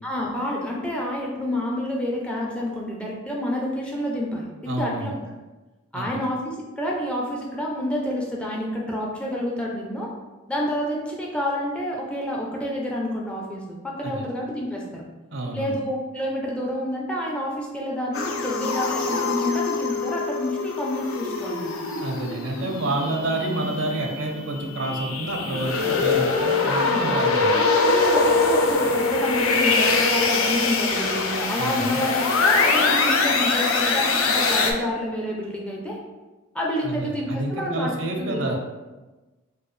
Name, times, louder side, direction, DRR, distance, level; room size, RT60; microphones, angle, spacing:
voice 1, 0.0-5.1 5.9-10.1 10.5-15.0 15.5-21.8 26.8-27.1 27.5-36.0 36.5-38.4, left 1 dB, 5° left, -3 dB, 0.4 m, -28 dB
voice 2, 4.7-5.1 5.9-6.2 14.0-14.2 15.3-15.8 22.0-27.5 31.6-32.0 36.8-38.6, right 2 dB, 65° right, 2 dB, 0.6 m, -29 dB
sound 1, 18.1-34.7, left 3 dB, 85° left, 0.5 m, -23 dB
4.5 x 2.3 x 3.1 m, 1.2 s
head